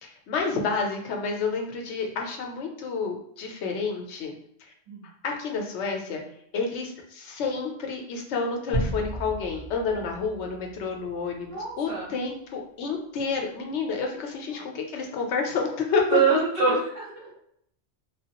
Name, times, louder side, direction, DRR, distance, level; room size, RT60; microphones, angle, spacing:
voice 1, 0.0-4.3 5.2-6.2 6.5-16.4, left 4 dB, 75° left, 2 dB, 0.9 m, -29 dB
sound 1, 8.7-11.5, right 1 dB, 5° right, 1.1 m, -34 dB
voice 2, 11.5-12.1 14.5-14.6 16.1-17.4, right 5 dB, 55° right, -9 dB, 1.2 m, -25 dB
3.1 x 2.3 x 2.8 m, 0.73 s
omnidirectional pair, 1.2 m